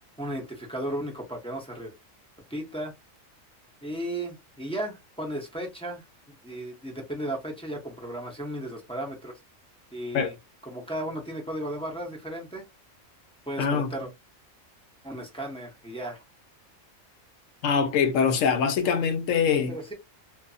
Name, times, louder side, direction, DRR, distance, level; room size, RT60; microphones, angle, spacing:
voice 1, 0.2-1.9 2.5-2.9 3.8-9.4 9.9-10.3 10.7-12.7 13.5-14.1 15.0-16.2 19.7-19.9, right 1 dB, 10° left, 0.4 m, -35 dB
voice 2, 13.6-13.9 17.6-19.8, left 6 dB, 80° left, 1.0 m, -23 dB
2.6 x 2.5 x 2.3 m
omnidirectional pair, 1.4 m